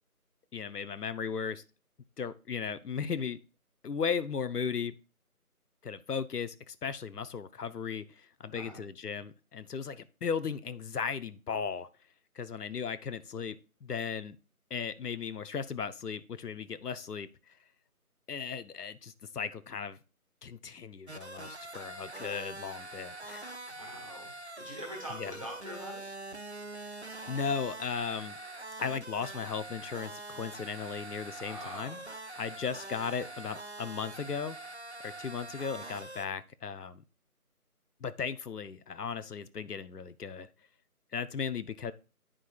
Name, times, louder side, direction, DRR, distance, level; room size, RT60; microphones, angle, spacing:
voice 1, 0.5-1.6 2.2-3.4 3.8-4.9 5.8-11.9 12.4-14.4 14.7-17.3 18.3-20.0 20.4-23.5 25.1-25.3 27.3-28.4 28.8-32.0 32.4-34.6 35.0-37.0 38.0-40.5 41.1-41.9, left 6 dB, 85° left, 14 dB, 0.7 m, -36 dB
voice 2, 8.5-8.8 23.7-26.0 31.4-32.0, equal, 20° right, -1 dB, 1.3 m, -44 dB
sound 1, 21.1-36.3, right 2 dB, 50° right, 0.5 m, -44 dB
9.6 x 5.0 x 2.3 m, 0.33 s
figure-of-eight pair, 170°, 45 cm